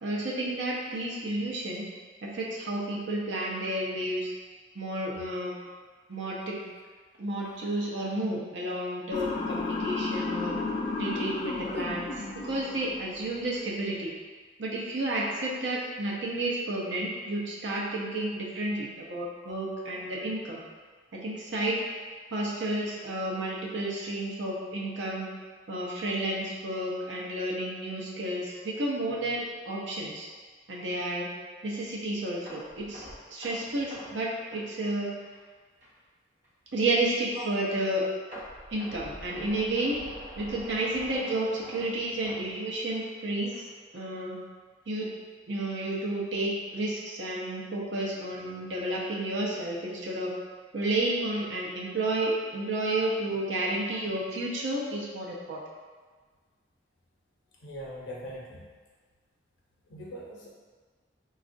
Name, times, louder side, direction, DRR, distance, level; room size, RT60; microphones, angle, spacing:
voice 1, 0.0-1.9 2.2-4.3 4.7-5.6 6.1-6.6 7.2-10.6 11.0-14.1 14.6-20.6 21.1-21.8 22.3-25.3 25.7-30.3 30.7-31.3 31.6-35.1 36.7-38.0 38.7-40.0 40.4-43.6 43.9-44.4 44.9-45.1 45.5-50.3 50.7-55.6, right 1 dB, 75° right, -4 dB, 0.7 m, -31 dB
Motor vehicle (road) / Siren, 9.1-13.3, left 3 dB, 25° left, 0.4 m, -33 dB
sound 1, 32.5-35.5 35.8-36.0 36.4-36.5 38.3-43.2 43.5-43.7 44.2-44.3, equal, 45° right, 1.1 m, -46 dB
voice 2, 57.6-58.7 59.9-60.5, equal, 85° left, -3 dB, 0.7 m, -41 dB
4.1 x 2.4 x 2.5 m, 1.5 s
head